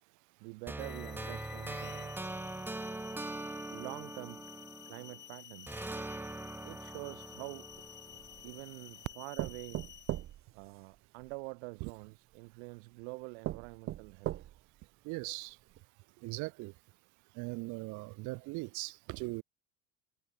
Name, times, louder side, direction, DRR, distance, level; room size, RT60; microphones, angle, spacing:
voice 1, 0.4-2.2 3.7-4.4 4.9-5.8 6.6-7.7 8.4-9.8 10.5-14.5, right 32 dB, 80° right, 2.3 m, -46 dB
sound 1, 0.7-5.2 5.7-8.7, right 2 dB, 5° right, 1.6 m, -42 dB
sound 2, 0.8-10.3, left 11 dB, 35° left, 1.4 m, -52 dB
sound 3, 7.7-8.6 9.4-11.3 12.3-12.4 13.0-13.1 13.4-14.8 15.3-15.4 15.7-15.8, right 13 dB, 40° right, 2.2 m, -40 dB
voice 2, 15.0-15.5 16.2-16.7 17.4-19.4, right 25 dB, 65° right, 3.1 m, -39 dB
cardioid pair, 145°, 32 cm